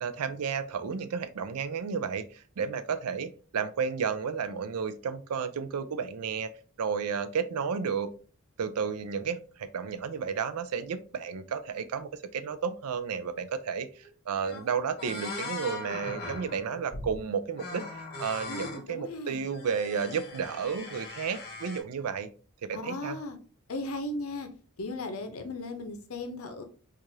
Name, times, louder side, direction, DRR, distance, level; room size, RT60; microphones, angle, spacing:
voice 1, 0.0-6.5 6.8-8.1 8.6-17.8 18.2-22.3 22.6-23.2, right 6 dB, 90° right, 12 dB, 0.4 m, -32 dB
sound 1, 14.0-14.1 14.4-14.7 15.0-17.2 17.6-18.8 19.4-21.8, left 3 dB, 45° left, 0.9 m, -40 dB
voice 2, 18.5-19.4 22.7-23.4 23.7-24.5 24.8-26.6, left 2 dB, 70° left, 7 dB, 0.7 m, -36 dB
4.6 x 2.5 x 2.7 m, 0.37 s
head